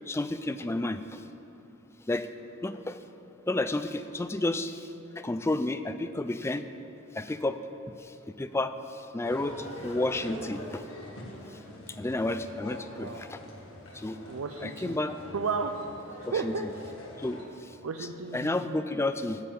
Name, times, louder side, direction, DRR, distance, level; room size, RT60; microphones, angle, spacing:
voice 1, 0.1-1.2 2.1-2.3 2.6-3.0 3.5-6.6 7.1-7.6 7.9-10.8 11.9-13.4 13.9-14.2 14.6-15.2 16.3-16.5 17.2-17.8 18.3-19.4, left 2 dB, 10° left, 10 dB, 0.3 m, -31 dB
sound 1, 9.2-17.4, left 1 dB, 75° left, 1.7 m, -44 dB
voice 2, 14.3-15.0 15.3-15.7 16.3-16.7 17.8-18.8, right 5 dB, 75° right, 4 dB, 0.5 m, -33 dB
13.0 x 5.5 x 7.6 m, 3.0 s
head